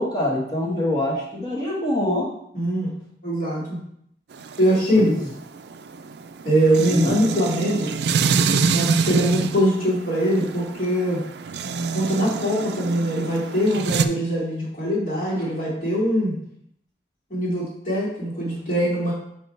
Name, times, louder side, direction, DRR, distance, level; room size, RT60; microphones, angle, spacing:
voice 1, 0.0-2.3 4.9-5.2 6.9-7.1 8.2-8.4, left 1 dB, 25° left, -4 dB, 1.3 m, -24 dB
voice 2, 2.5-2.9 3.2-3.8 4.6-5.1 6.4-7.9 8.7-11.2 11.9-16.3 17.3-19.1, equal, 50° left, -6 dB, 2.8 m, -22 dB
sound 1, 4.3-14.1, right 5 dB, 65° right, 0.4 m, -26 dB
5.2 x 4.8 x 4.6 m, 0.72 s
head